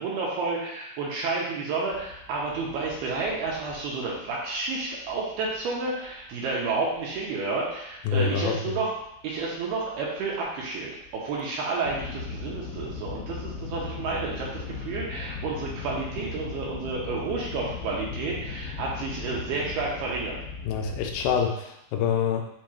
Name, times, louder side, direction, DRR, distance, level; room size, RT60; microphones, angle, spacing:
voice 1, 0.0-8.9 9.2-20.4, right 3 dB, 80° right, -4 dB, 2.4 m, -30 dB
sound 1, 1.9-4.5 4.8-7.2 7.5-10.7 11.0-21.4, left 5 dB, 60° left, 2.3 m, -38 dB
voice 2, 8.1-8.8 20.7-22.4, left 6 dB, 85° left, 3 dB, 2.6 m, -26 dB
7.2 x 3.0 x 2.3 m, 0.80 s
omnidirectional pair, 4.9 m